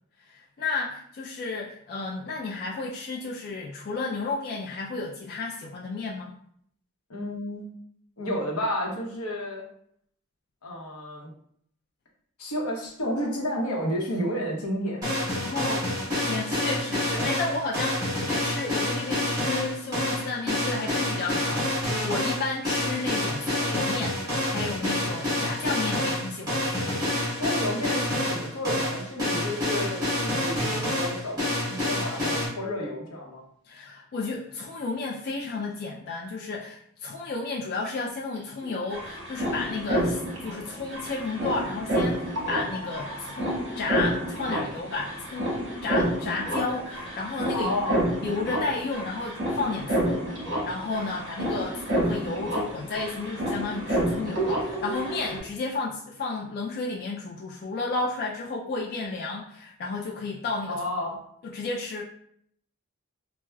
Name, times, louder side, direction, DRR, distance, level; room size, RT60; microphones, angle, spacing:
voice 1, 0.3-6.4 15.4-15.9 16.2-27.0 33.6-60.8 61.4-62.0, left 3 dB, 45° left, -3 dB, 0.3 m, -32 dB
voice 2, 7.1-7.8 8.2-9.6 10.6-11.3 12.4-15.5 27.4-31.4 31.7-33.4 47.5-48.0 60.7-61.2, equal, 80° left, -1 dB, 0.8 m, -31 dB
sound 1, 15.0-32.5, left 1 dB, 15° right, 1.2 m, -28 dB
sound 2, 38.4-38.5 38.6-55.4, right 1 dB, 55° right, 1.0 m, -29 dB
4.6 x 2.0 x 2.2 m, 0.67 s
head